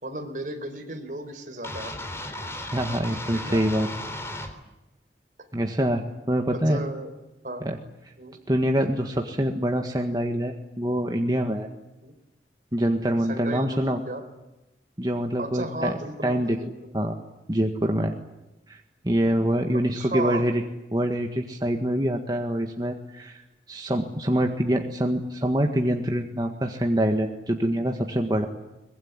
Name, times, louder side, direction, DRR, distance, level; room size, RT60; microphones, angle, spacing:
voice 1, 0.0-1.9 3.1-3.6 6.5-7.1 7.4-7.7 8.2-8.4 12.0-12.1 13.3-14.2 15.4-16.9 19.9-20.5, right 1 dB, 45° right, 5 dB, 4.5 m, -34 dB
sound 1, 1.6-4.5, left 1 dB, 15° left, 3.5 m, -35 dB
voice 2, 2.7-3.9 5.5-6.8 7.6-7.8 8.5-11.7 12.7-14.0 15.0-15.9 16.2-16.6 16.9-17.2 17.5-18.1 18.7-20.6 20.9-23.4 23.7-28.5, equal, 20° right, 3 dB, 1.7 m, -25 dB
23.5 x 21.5 x 9.8 m, 0.97 s
head